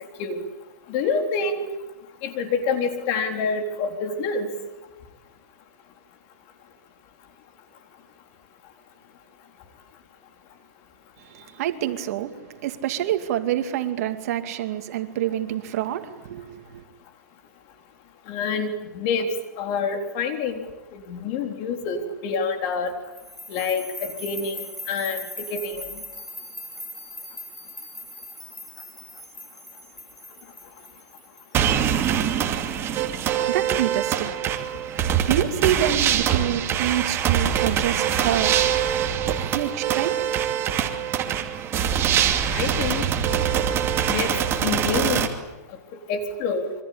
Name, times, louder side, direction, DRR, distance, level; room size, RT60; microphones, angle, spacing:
voice 1, 0.9-1.7 2.2-4.5 18.3-19.3 19.6-20.7 21.1-22.9 23.5-24.6 24.9-25.2 25.5-25.9 42.5-43.0 44.1-44.3 44.6-45.3 46.1-46.7, left 5 dB, 45° left, 3.9 m, -27 dB
voice 2, 11.3-12.4 12.6-16.8 33.5-34.4 35.2-38.6 39.2-40.3 40.9-41.0 42.0-42.3, right 11 dB, 55° right, 2.4 m, -27 dB
sound 1, 23.1-32.2, left 1 dB, 5° left, 5.5 m, -40 dB
sound 2, 31.5-45.3, right 9 dB, 25° right, 2.6 m, -23 dB
27.0 x 24.0 x 8.7 m
supercardioid pair, 150°, 10 cm